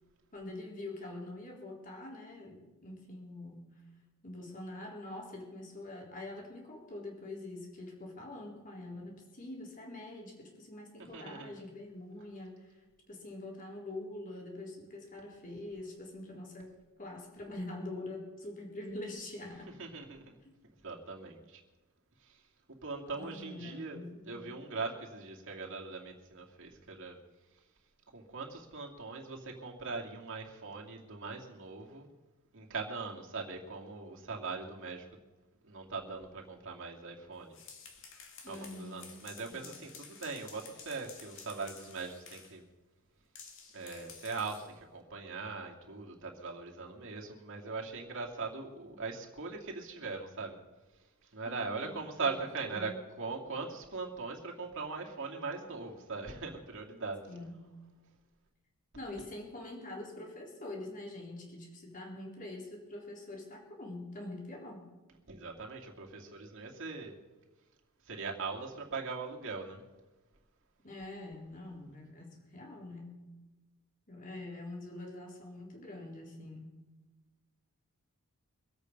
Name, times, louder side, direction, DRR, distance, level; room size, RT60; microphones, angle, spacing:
voice 1, 0.3-3.8 4.2-19.7 20.4-20.5 23.2-24.6 38.4-39.2 39.5-39.7 51.4-52.3 52.6-53.0 57.3-57.6 58.9-64.9 70.8-73.1 74.1-76.7, left 2 dB, 35° left, -1 dB, 3.6 m, -45 dB
voice 2, 11.1-11.5 19.8-20.4 20.8-21.6 22.2-22.3 22.8-24.0 24.2-27.2 28.1-32.1 32.5-35.1 35.6-37.6 38.4-42.6 43.7-50.6 51.3-57.2 65.3-67.1 68.1-69.8, right 4 dB, 60° right, 0 dB, 2.5 m, -40 dB
sound 1, 37.4-42.6 43.3-44.7, left 6 dB, 60° left, 2.3 m, -52 dB
24.5 x 8.4 x 5.4 m, 1.2 s
head